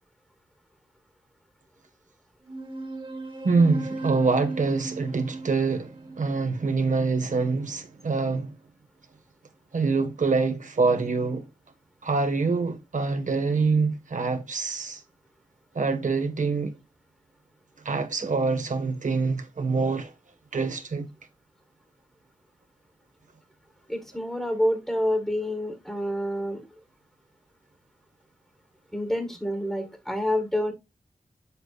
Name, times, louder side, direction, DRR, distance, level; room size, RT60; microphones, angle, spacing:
sound 1, 2.5-7.4, right 3 dB, 35° right, 1.6 m, -37 dB
voice 1, 3.4-8.5 9.7-11.5 12.0-15.0 15.7-16.7 17.8-20.1 20.5-21.1, right 4 dB, 65° right, 1.7 m, -25 dB
voice 2, 23.9-26.6 28.9-30.7, equal, ahead, 1.7 m, -27 dB
8.2 x 7.6 x 2.5 m
wide cardioid pair, 105°, 14 cm